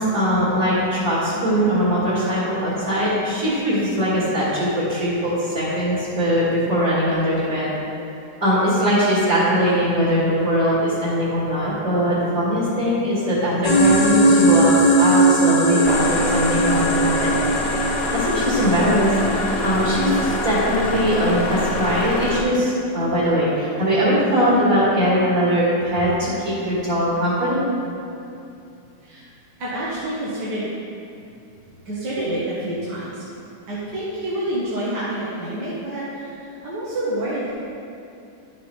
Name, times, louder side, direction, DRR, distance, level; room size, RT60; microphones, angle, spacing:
voice 1, 0.0-7.7 8.4-14.7 15.0-17.4 17.9-27.6, equal, 50° right, -9 dB, 2.6 m, -21 dB
sound 1, 13.6-22.4, right 1 dB, 80° left, 1.7 m, -20 dB
sound 2, 15.8-22.4, left 1 dB, 60° left, 1.3 m, -27 dB
voice 2, 29.6-30.7 31.9-33.2 33.7-37.5, right 1 dB, 70° right, -9 dB, 2.1 m, -28 dB
12.0 x 6.8 x 3.3 m, 2.6 s
omnidirectional pair, 1.9 m